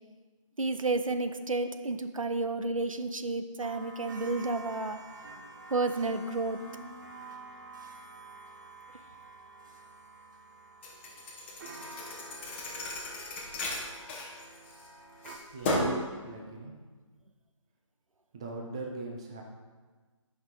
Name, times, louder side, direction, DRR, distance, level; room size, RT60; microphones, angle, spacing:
voice 1, 0.6-5.0 5.7-6.6, right 3 dB, 90° right, 9 dB, 0.7 m, -31 dB
sound 1, 3.6-15.4, right 3 dB, 35° right, 0.9 m, -48 dB
Thump thud, 10.8-14.9 15.2-16.1, left 1 dB, 20° left, 1.1 m, -34 dB
voice 2, 15.5-15.8 16.2-16.9 18.3-19.4, right 2 dB, 10° right, 1 dB, 0.3 m, -41 dB
9.3 x 5.6 x 3.8 m, 1.4 s
figure-of-eight pair, 150°, 17 cm